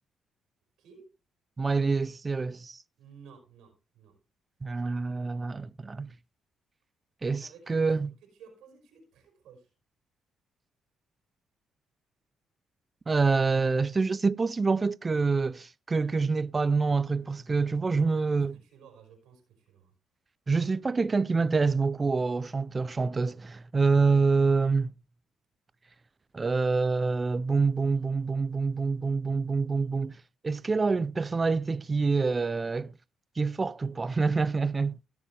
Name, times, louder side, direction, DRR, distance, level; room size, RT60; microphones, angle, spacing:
voice 1, 0.8-1.1 3.0-4.2 7.3-7.9 8.2-9.7 17.8-19.9, right 6 dB, 85° right, 4.8 m, -54 dB
voice 2, 1.6-2.8 4.6-6.1 7.2-8.1 13.1-18.5 20.5-24.9 26.3-30.2 30.4-32.9 33.4-35.0, right 4 dB, 30° right, 0.4 m, -26 dB
17.0 x 7.0 x 3.3 m
cardioid pair, 90°, 0 cm